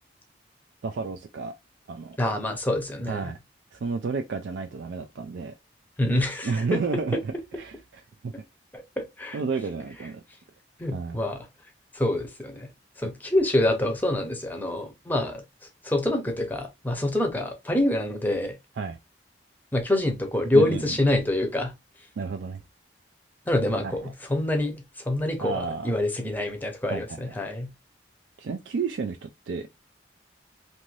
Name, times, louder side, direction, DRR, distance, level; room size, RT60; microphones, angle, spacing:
voice 1, 0.8-1.5 1.9-2.2 3.0-3.4 3.7-5.5 6.4-8.3 9.3-10.2 10.9-11.2 18.8-19.0 20.5-21.0 22.2-22.6 23.8-24.1 25.4-26.0 26.9-27.2 28.4-29.9, right 4 dB, 75° right, 0.4 m, -31 dB
voice 2, 2.2-3.3 6.0-6.8 8.7-9.4 10.8-11.4 11.9-12.7 13.0-15.4 15.8-18.5 19.7-21.7 23.5-24.0 24.3-27.7, left 1 dB, 10° left, 0.6 m, -26 dB
2.6 x 2.5 x 3.1 m
head